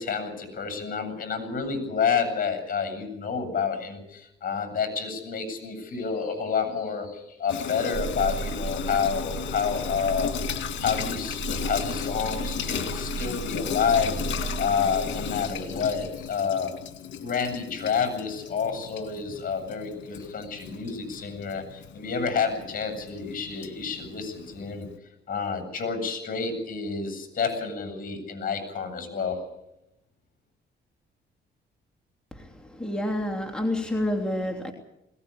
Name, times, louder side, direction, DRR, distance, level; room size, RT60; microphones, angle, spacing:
voice 1, 0.0-10.4 10.8-16.8 17.2-24.9 25.3-29.5, left 6 dB, 45° left, 8 dB, 7.9 m, -29 dB
Water tap faucet / Sink (filling or washing), 7.5-25.0, left 8 dB, 70° left, 2.1 m, -35 dB
sound 1, 7.9-16.5, right 6 dB, 50° right, 5.7 m, -36 dB
voice 2, 32.3-34.7, left 1 dB, 5° left, 2 dB, 3.0 m, -29 dB
21.0 x 18.5 x 8.6 m, 0.86 s
cardioid pair, 90°, 20 cm